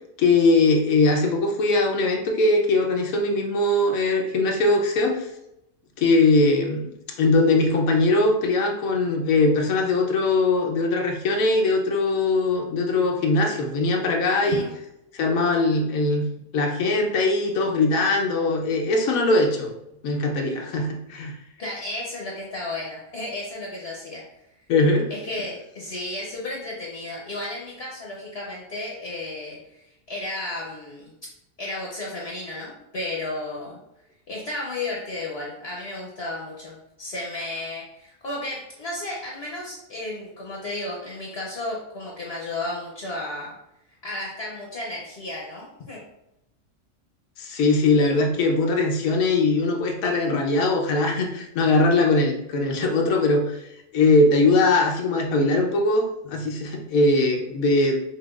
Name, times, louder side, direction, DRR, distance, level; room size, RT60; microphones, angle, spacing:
voice 1, 0.2-5.3 6.0-6.9 7.2-14.6 15.1-16.3 16.5-19.7 20.0-21.3 24.7-25.1 47.4-53.6 53.9-58.0, left 2 dB, 85° left, 1 dB, 1.1 m, -21 dB
voice 2, 14.4-14.7 21.6-24.2 25.1-31.1 31.6-33.8 34.3-43.5 44.0-46.0, left 2 dB, 55° left, -4 dB, 1.0 m, -33 dB
5.6 x 2.6 x 2.4 m, 0.84 s
omnidirectional pair, 1.4 m